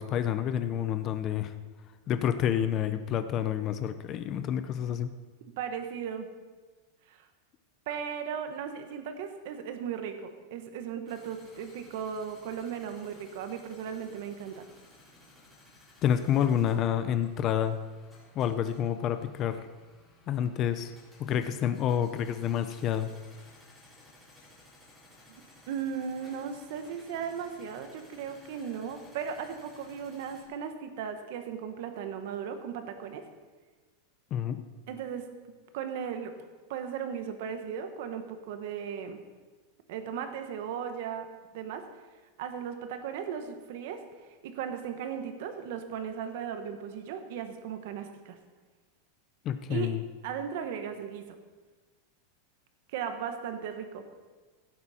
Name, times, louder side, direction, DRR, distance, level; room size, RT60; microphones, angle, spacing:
voice 1, 0.0-1.5 2.1-5.1 16.0-17.8 18.4-19.6 20.3-20.9 21.2-23.1 34.3-34.6 49.4-50.0, left 9 dB, 30° left, 10 dB, 0.5 m, -28 dB
voice 2, 5.6-6.3 7.1-7.2 7.9-14.7 25.7-33.3 34.9-35.3 35.7-36.3 36.7-39.2 39.9-41.3 41.5-41.9 42.4-44.0 44.4-48.4 49.7-50.0 50.2-51.2 52.9-54.1, right 7 dB, 60° right, 7 dB, 1.3 m, -36 dB
sound 1, 11.1-30.4, left 2 dB, 5° left, 3.8 m, -57 dB
16.5 x 8.5 x 4.3 m, 1.4 s
supercardioid pair, 165°, 0 cm